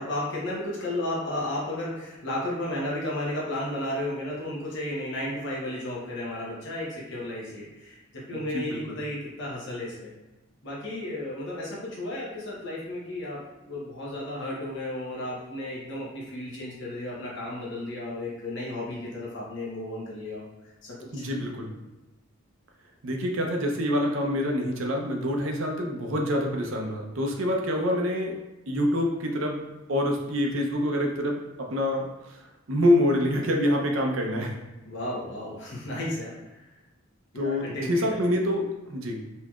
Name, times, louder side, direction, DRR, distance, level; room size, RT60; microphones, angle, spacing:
voice 1, 0.0-10.1 10.6-13.4 13.7-20.4 20.8-21.2 34.8-36.7 37.4-37.9, left 1 dB, 60° left, -5 dB, 1.0 m, -33 dB
voice 2, 8.3-9.0 21.1-21.7 23.0-28.3 28.7-29.6 29.9-32.4 32.7-34.5 37.4-39.2, left 1 dB, 70° right, 1 dB, 0.7 m, -26 dB
4.3 x 2.9 x 2.3 m, 1.1 s
head